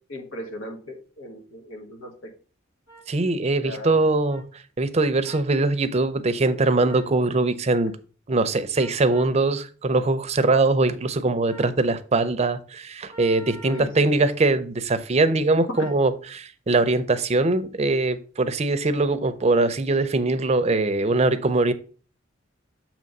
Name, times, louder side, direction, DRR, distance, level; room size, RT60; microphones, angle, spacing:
voice 1, 0.1-2.3 3.6-3.9 13.6-14.3 15.7-15.8, left 1 dB, 90° left, 1.3 m, -37 dB
sound 1, 2.9-3.0 4.3-4.4 5.2-5.5 6.8-7.1 8.7-9.3 11.5-11.8 13.1-13.9 15.7-16.0, right 3 dB, 65° left, 2.9 m, -45 dB
voice 2, 3.1-7.9 8.3-21.7, right 2 dB, 35° right, 0.5 m, -22 dB
7.5 x 3.0 x 5.2 m
head